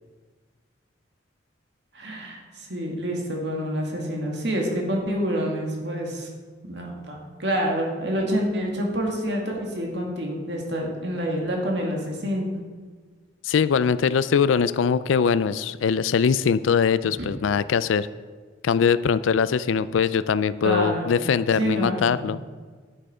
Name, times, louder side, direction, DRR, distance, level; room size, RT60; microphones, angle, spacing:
voice 1, 1.9-2.4 2.7-6.3 6.7-12.6 17.2-17.3 20.6-22.3, equal, 60° right, 0 dB, 2.2 m, -27 dB
voice 2, 13.4-18.1 18.6-22.4, left 6 dB, 80° left, 16 dB, 0.4 m, -22 dB
10.0 x 9.3 x 4.9 m, 1.5 s
head